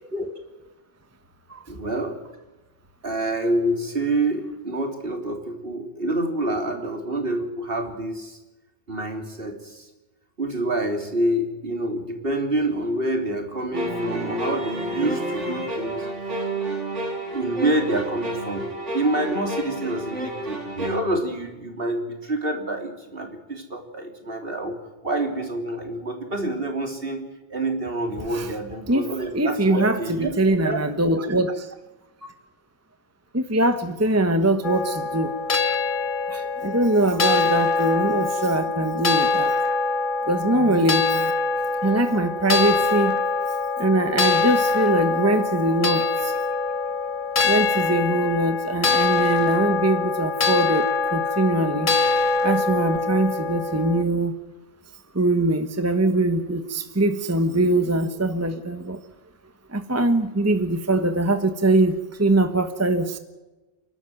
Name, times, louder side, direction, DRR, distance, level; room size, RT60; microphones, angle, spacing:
voice 1, 1.7-2.2 3.0-8.4 8.9-9.9 10.4-16.1 17.3-24.8 25.0-27.2 27.5-30.8, right 1 dB, 50° right, 3 dB, 3.6 m, -27 dB
sound 1, 13.7-21.0, right 1 dB, 90° right, 3.7 m, -30 dB
voice 2, 28.9-31.7 33.3-35.3 36.3-39.5 40.3-41.3 41.8-43.2 43.8-46.4 47.4-51.9 52.4-54.3 55.1-59.0 59.7-63.2, right 2 dB, 15° right, 8 dB, 1.1 m, -22 dB
sound 2, 34.6-54.0, left 3 dB, 45° left, 1.3 m, -24 dB
29.0 x 12.5 x 9.2 m, 1.1 s
omnidirectional pair, 1.2 m